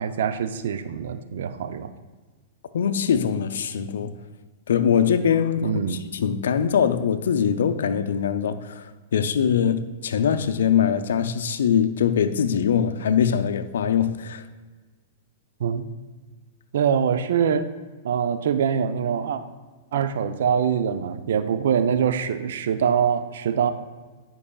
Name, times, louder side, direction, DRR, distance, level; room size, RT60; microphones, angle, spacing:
voice 1, 0.0-1.9 5.6-6.0 15.6-15.9 16.7-17.7 18.0-19.4 19.9-23.7, right 7 dB, 70° right, 0.5 m, -24 dB
voice 2, 2.7-4.1 4.7-14.5, left 8 dB, 80° left, 0.5 m, -22 dB
11.5 x 5.4 x 2.3 m
hypercardioid pair, 120°, 0 cm